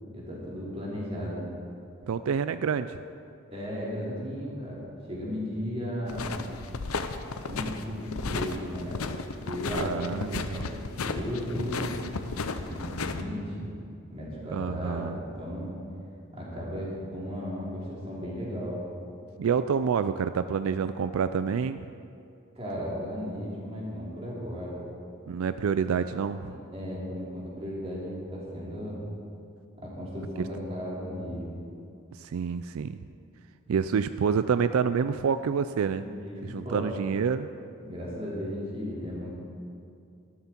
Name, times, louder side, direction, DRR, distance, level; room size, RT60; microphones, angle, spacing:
voice 1, 0.0-1.4 3.5-4.8 5.1-6.4 7.4-11.9 12.6-13.7 14.1-15.7 16.3-18.8 22.5-24.8 26.4-29.0 29.8-31.5 36.0-36.9 37.8-39.3, equal, 30° right, -6 dB, 3.2 m, -35 dB
voice 2, 2.1-3.0 9.7-10.7 14.5-15.2 19.4-21.8 25.3-26.5 32.1-33.0 33.7-36.0 36.4-37.5, right 6 dB, 80° right, 12 dB, 0.4 m, -28 dB
sound 1, 6.1-13.2, left 4 dB, 90° left, 0.7 m, -34 dB
13.5 x 13.0 x 4.4 m, 2.5 s
head